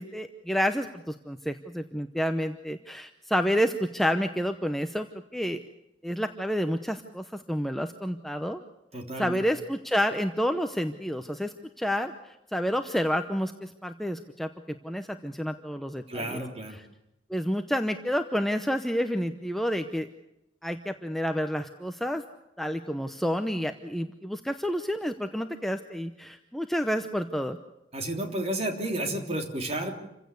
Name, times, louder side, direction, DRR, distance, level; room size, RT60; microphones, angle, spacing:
voice 1, 0.0-5.1 5.3-5.6 6.0-8.6 9.2-16.4 17.3-20.1 20.6-22.2 22.6-27.6, equal, ahead, 6 dB, 0.8 m, -29 dB
voice 2, 8.9-9.4 16.1-16.8 27.9-29.9, right 1 dB, 35° right, 4 dB, 3.3 m, -31 dB
28.0 x 16.0 x 8.3 m, 0.90 s
head